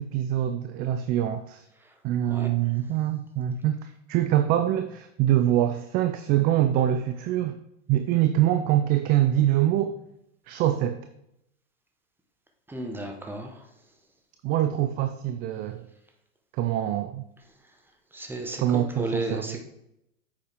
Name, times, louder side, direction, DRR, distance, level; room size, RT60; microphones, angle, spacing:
voice 1, 0.0-1.6 2.0-7.6 7.9-9.9 10.5-11.0 14.4-15.8 16.5-17.2 18.6-19.6, right 12 dB, 25° right, 9 dB, 0.4 m, -24 dB
voice 2, 12.7-13.5 18.1-19.6, right 1 dB, 5° right, 3 dB, 1.3 m, -33 dB
8.7 x 7.1 x 3.7 m, 0.82 s
hypercardioid pair, 105°, 38 cm